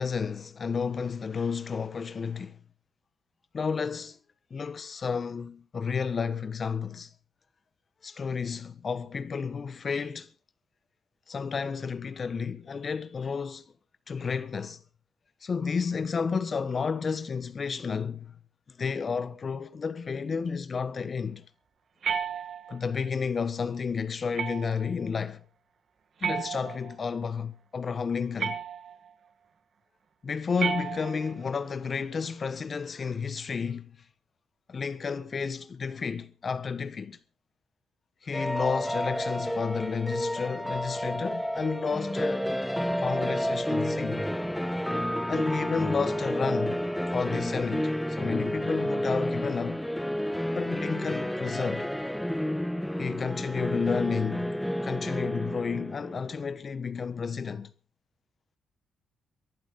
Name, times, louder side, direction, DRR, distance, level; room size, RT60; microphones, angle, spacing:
voice 1, 0.0-2.6 3.5-4.2 4.5-7.1 8.0-10.3 11.3-13.7 14.1-14.8 15.4-18.4 18.8-21.4 22.7-25.4 26.2-28.6 30.2-34.0 34.7-37.2 38.2-42.5 43.0-44.3 45.0-46.8 47.1-49.8 50.5-51.9 53.0-54.6 54.8-57.7, left 5 dB, 40° left, 1.3 m, -31 dB
sound 1, 22.0-22.9 24.4-24.9 26.2-27.1 28.4-29.1 30.6-31.5, right 7 dB, 55° right, 1.6 m, -33 dB
sound 2, 38.3-56.4, equal, 5° left, 1.1 m, -30 dB
23.5 x 11.5 x 3.8 m
cardioid pair, 90°, 0 cm